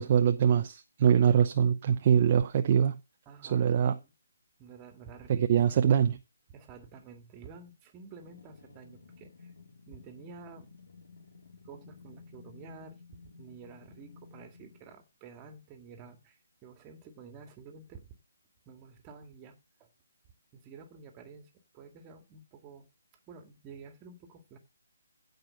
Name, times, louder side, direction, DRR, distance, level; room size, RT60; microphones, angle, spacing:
voice 1, 0.0-3.0 3.4-4.0 5.3-6.2, right 8 dB, 35° right, 0.7 m, -24 dB
voice 2, 3.3-4.1 4.6-5.8 6.5-9.5 9.9-10.7 11.6-13.0 13.4-18.2 18.7-19.9 20.5-22.9 23.3-24.6, right 5 dB, 20° right, 2.1 m, -50 dB
sound 1, 8.2-15.0, left 4 dB, 70° left, 3.2 m, -54 dB
15.5 x 5.2 x 6.6 m
hypercardioid pair, 160°, 0 cm